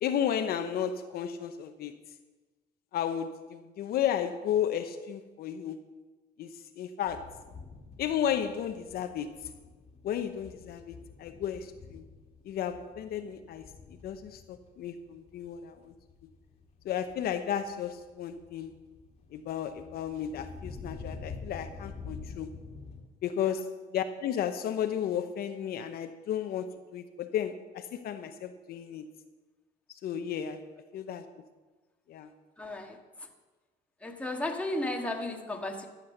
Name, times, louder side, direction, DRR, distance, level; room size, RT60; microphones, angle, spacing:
voice 1, 0.0-1.9 2.9-5.9 6.4-7.4 8.0-9.5 10.0-12.0 12.4-15.9 16.8-18.7 19.3-22.5 23.2-29.1 30.0-30.6 30.9-31.3 32.1-32.3, left 9 dB, 65° left, 8 dB, 0.8 m, -33 dB
sound 1, 7.0-23.0, left 4 dB, 35° left, 2.0 m, -47 dB
voice 2, 32.6-33.3 34.0-35.9, left 1 dB, 5° left, 2 dB, 1.6 m, -34 dB
12.5 x 7.6 x 6.6 m, 1.3 s
cardioid pair, 110°, 17 cm